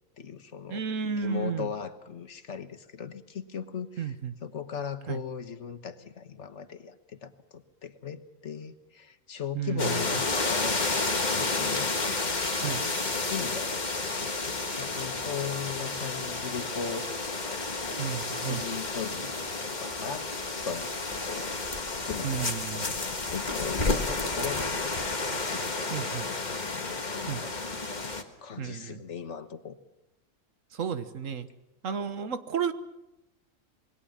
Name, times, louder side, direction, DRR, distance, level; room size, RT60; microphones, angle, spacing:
voice 1, 0.2-0.9 1.1-4.1 4.4-11.9 13.0-13.8 14.2-17.1 18.4-20.3 20.6-21.7 22.0-25.0 25.4-26.2 26.7-27.5 28.0-28.1 28.4-29.8, left 7 dB, 65° left, 11 dB, 1.5 m, -38 dB
voice 2, 0.7-1.7 4.0-4.3 5.1-5.2 9.5-10.0 12.6-12.8 18.0-18.6 22.2-22.9 25.9-26.3 27.3-27.4 28.6-29.0 30.7-31.5 31.8-32.7, right 7 dB, 75° right, 12 dB, 1.6 m, -32 dB
sound 1, 9.8-28.2, left 3 dB, 35° left, 1.7 m, -31 dB
26.5 x 21.0 x 7.4 m, 0.94 s
omnidirectional pair, 1.3 m